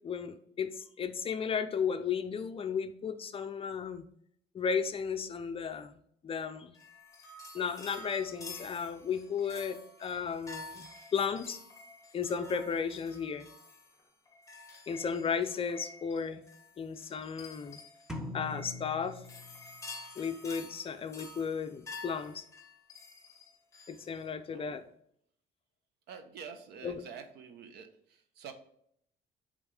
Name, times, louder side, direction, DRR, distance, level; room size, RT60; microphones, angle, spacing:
voice 1, 0.0-0.7 1.0-4.0 4.5-6.0 6.2-6.7 7.5-10.9 11.1-11.6 12.1-13.5 14.9-16.4 16.8-17.8 18.3-19.2 20.2-22.5 23.9-24.8 26.8-27.0, left 6 dB, 35° left, 10 dB, 0.5 m, -34 dB
sound 1, 6.7-24.2, left 3 dB, 20° left, 1.4 m, -50 dB
sound 2, 18.1-20.0, left 2 dB, 5° right, 1.0 m, -42 dB
voice 2, 24.5-24.8 26.1-28.5, right 6 dB, 75° right, 7 dB, 1.0 m, -47 dB
8.5 x 3.5 x 3.4 m, 0.68 s
cardioid pair, 110°, 17 cm